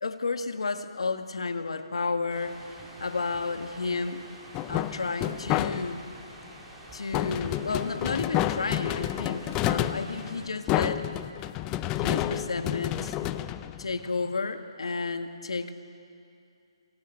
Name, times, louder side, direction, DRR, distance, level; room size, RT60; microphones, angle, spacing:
voice 1, 0.0-2.6 3.0-4.2 4.7-6.0 6.9-11.1 11.9-13.2 13.8-15.7, left 4 dB, 75° left, 8 dB, 1.6 m, -32 dB
sound 1, 2.3-10.5, right 1 dB, 5° right, 3.3 m, -47 dB
sound 2, 4.5-6.1 7.1-14.3, left 13 dB, 15° left, 0.5 m, -30 dB
26.5 x 16.5 x 9.0 m, 2.6 s
hypercardioid pair, 160°, 3 cm